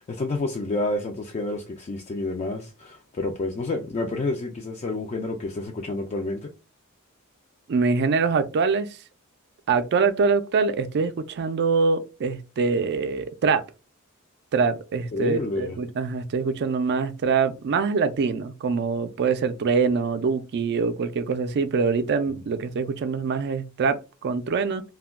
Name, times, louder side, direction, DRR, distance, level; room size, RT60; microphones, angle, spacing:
voice 1, 0.0-6.5 15.1-15.8, left 2 dB, 30° left, 0.3 m, -29 dB
voice 2, 7.7-8.9 9.7-13.6 14.5-24.8, right 5 dB, 50° right, 0.4 m, -24 dB
2.2 x 2.1 x 3.4 m
head